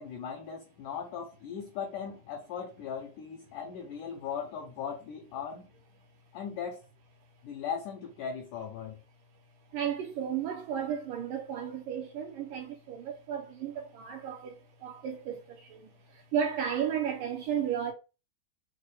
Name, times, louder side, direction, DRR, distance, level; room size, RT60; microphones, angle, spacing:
voice 1, 0.0-5.7 6.3-6.8 7.4-9.0, left 7 dB, 80° left, 1.8 m, -38 dB
voice 2, 9.7-17.9, right 8 dB, 80° right, 1.9 m, -34 dB
6.4 x 2.2 x 3.2 m
omnidirectional pair, 4.4 m